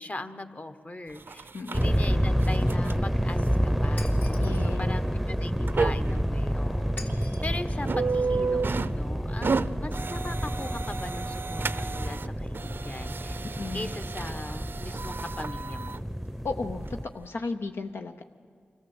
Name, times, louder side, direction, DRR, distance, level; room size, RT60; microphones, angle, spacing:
voice 1, 0.0-13.4 13.7-16.1, left 2 dB, 35° left, 9 dB, 1.2 m, -40 dB
sound 1, 1.2-1.8 2.3-3.0 3.4-3.5 4.3-4.4 4.8-5.0 5.7-6.2 6.7-6.8 7.1-7.4 7.8-9.0 9.3-12.3 12.5-16.0 16.7-16.8 17.2-17.3, right 4 dB, 60° right, 0.5 m, -32 dB
voice 2, 1.5-2.0 4.4-4.9 13.5-13.9 16.4-16.8 17.1-18.2, left 3 dB, 75° left, 5 dB, 0.7 m, -34 dB
sound 2, 1.7-17.1, equal, ahead, 0.7 m, -29 dB
Shatter, 4.0-4.7 7.0-7.7, left 3 dB, 60° left, 3.1 m, -44 dB
24.0 x 14.5 x 7.9 m, 2.3 s
cardioid pair, 45°, 4 cm